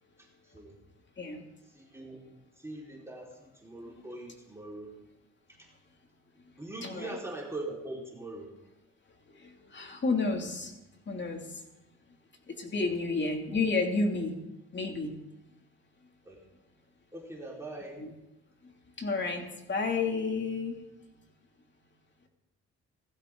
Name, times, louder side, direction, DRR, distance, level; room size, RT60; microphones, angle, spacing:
voice 1, 1.7-2.2 2.6-4.9 6.6-8.5 16.2-16.4 17.1-18.0, right 2 dB, 10° right, -4 dB, 4.9 m, -41 dB
voice 2, 9.4-10.7 11.1-11.5 12.5-14.4 14.7-15.1 18.0-18.1 19.0-20.8, left 3 dB, 35° left, 3 dB, 2.9 m, -31 dB
18.0 x 15.0 x 4.0 m, 0.95 s
cardioid pair, 90°, 30 cm